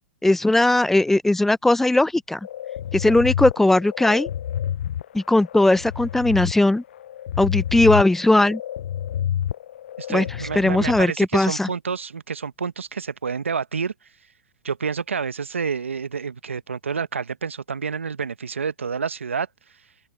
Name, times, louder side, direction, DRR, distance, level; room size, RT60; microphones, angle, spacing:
voice 1, 0.2-2.4 2.9-4.3 5.1-6.8 7.4-8.6 10.1-10.2 10.6-11.7, left 2 dB, 5° left, 0.5 m, -18 dB
sound 1, 2.4-11.1, left 10 dB, 70° left, 0.4 m, -29 dB
voice 2, 10.0-13.9 14.6-19.5, right 6 dB, 90° right, 1.0 m, -28 dB
open air
hypercardioid pair, 120°, 7 cm